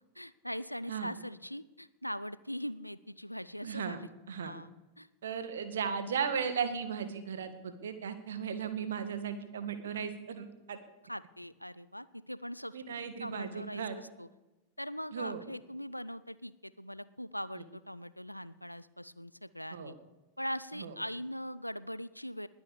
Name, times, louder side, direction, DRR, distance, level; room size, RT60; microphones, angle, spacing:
voice 1, 0.2-4.1 4.4-4.7 5.0-5.1 11.1-12.8 13.2-14.3 14.8-19.9 20.4-22.5, equal, 90° left, 17 dB, 0.6 m, -41 dB
voice 2, 3.6-4.0 4.3-4.5 5.2-10.8 12.7-14.0 15.1-15.4 17.5-17.6 19.7-19.9 20.8-20.9, right 7 dB, 65° right, 10 dB, 1.8 m, -36 dB
20.5 x 9.0 x 7.1 m, 1.1 s
figure-of-eight pair, 90°, 0 cm